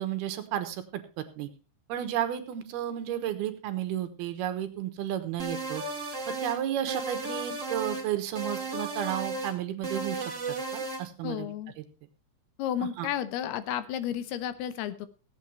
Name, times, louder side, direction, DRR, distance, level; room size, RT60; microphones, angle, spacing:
voice 1, 0.0-1.5 1.9-5.8 6.4-10.3 10.7-11.5 11.8-11.9 13.0-13.1, right 11 dB, 75° right, 9 dB, 3.0 m, -32 dB
sound 1, 5.4-6.6 6.9-8.1 8.4-9.5 9.8-11.0, right 3 dB, 30° right, 1.6 m, -34 dB
voice 2, 11.2-11.7 12.6-15.1, left 10 dB, 75° left, 14 dB, 2.8 m, -32 dB
16.5 x 8.7 x 4.4 m, 0.32 s
omnidirectional pair, 4.8 m